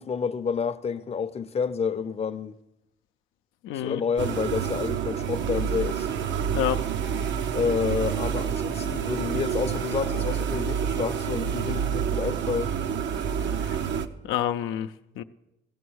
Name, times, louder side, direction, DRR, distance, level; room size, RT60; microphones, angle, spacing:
voice 1, 0.0-2.6 3.8-6.1 7.5-12.7, left 6 dB, 30° left, 0.6 m, -29 dB
voice 2, 3.6-4.0 6.5-6.8 13.6-13.8 14.2-15.2, left 11 dB, 90° left, 0.5 m, -28 dB
sound 1, 4.2-14.1, right 8 dB, 70° right, 0.7 m, -28 dB
16.0 x 7.0 x 6.3 m
cardioid pair, 90°, 20 cm